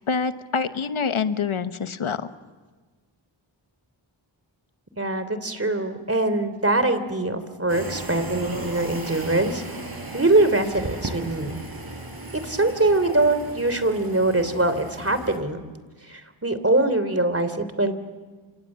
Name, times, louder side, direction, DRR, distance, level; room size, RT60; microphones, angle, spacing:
voice 1, 0.0-2.3, left 5 dB, 85° left, 10 dB, 1.2 m, -26 dB
voice 2, 4.9-9.6 10.1-11.6 12.4-15.6 16.1-17.9, right 2 dB, 30° right, 11 dB, 3.3 m, -23 dB
sound 1, 7.7-15.4, right 2 dB, 45° right, 6.3 m, -36 dB
29.5 x 26.5 x 7.5 m, 1.4 s
wide cardioid pair, 55°, 48 cm